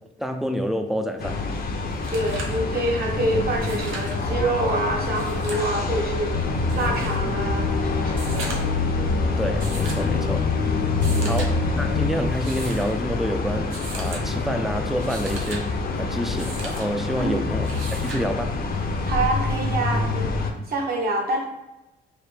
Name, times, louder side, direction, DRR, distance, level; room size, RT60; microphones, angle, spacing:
voice 1, 0.2-1.4 9.4-10.5 11.2-17.7 18.0-18.6, equal, ahead, 0.4 m, -28 dB
sound 1, 1.2-20.5, left 3 dB, 50° left, 0.7 m, -27 dB
sound 2, 1.6-1.7 1.9-2.6 3.5-4.2 5.0-5.7 6.7-7.2 8.1-8.8 9.6-10.1 10.9-11.5 12.3-12.9 13.7-14.2 14.9-15.6 16.4-16.9 17.6-18.3 19.7-19.8, right 3 dB, 90° right, 0.8 m, -37 dB
voice 2, 2.1-6.3 6.7-8.5 11.1-11.6 17.2-17.4 19.1-20.4 20.7-21.4, right 2 dB, 50° right, 1.1 m, -26 dB
sound 3, 6.3-12.3, left 4 dB, 90° left, 0.6 m, -26 dB
4.9 x 2.1 x 3.2 m
cardioid pair, 90°, 20 cm